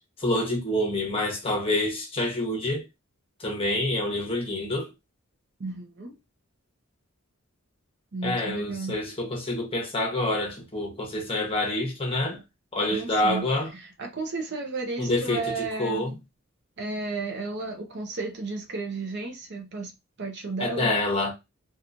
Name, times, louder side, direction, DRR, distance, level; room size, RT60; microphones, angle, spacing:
voice 1, 0.2-2.8 3.4-4.9 8.2-12.4 12.7-13.7 15.0-16.1 20.6-21.3, left 1 dB, 25° left, 0.9 m, -27 dB
voice 2, 5.6-6.1 8.1-9.0 12.9-13.5 13.7-16.2 16.8-19.9 20.2-21.0, right 3 dB, 50° right, 0.6 m, -33 dB
2.9 x 2.3 x 2.5 m
head